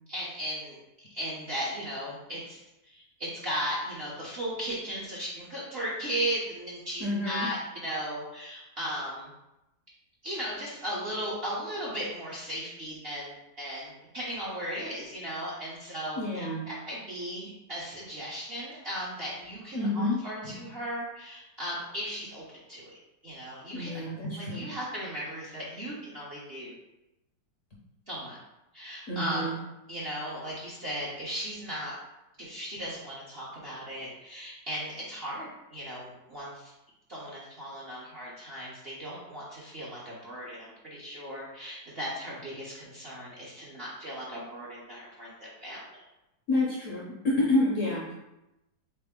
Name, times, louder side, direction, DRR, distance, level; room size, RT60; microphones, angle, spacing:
voice 1, 0.1-0.8 1.1-9.3 10.2-22.4 22.7-22.9 23.2-24.0 24.4-26.7 28.1-28.4 28.7-29.6 29.9-31.9 32.4-36.7 37.1-46.0, equal, 50° right, -7 dB, 0.8 m, -36 dB
voice 2, 7.0-7.5 16.2-16.6 19.7-20.2 20.5-20.6 23.7-24.7 29.1-29.5 46.5-48.1, left 1 dB, 60° left, -4 dB, 0.8 m, -28 dB
3.6 x 3.3 x 3.6 m, 0.92 s
omnidirectional pair, 2.0 m